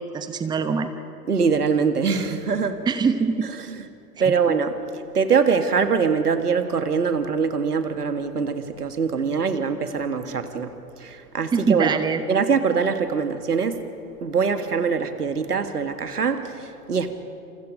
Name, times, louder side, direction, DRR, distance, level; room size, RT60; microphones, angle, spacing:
voice 1, 0.1-0.9 2.9-3.5 4.2-4.3 11.5-12.2, right 5 dB, 10° right, 10 dB, 1.0 m, -23 dB
voice 2, 1.3-2.8 3.7-3.8 4.2-4.8 5.1-10.7 11.0-12.0 12.3-13.8 14.2-17.1, right 5 dB, 75° right, 9 dB, 1.9 m, -23 dB
28.5 x 28.0 x 5.2 m, 2.6 s
figure-of-eight pair, 100°, 46 cm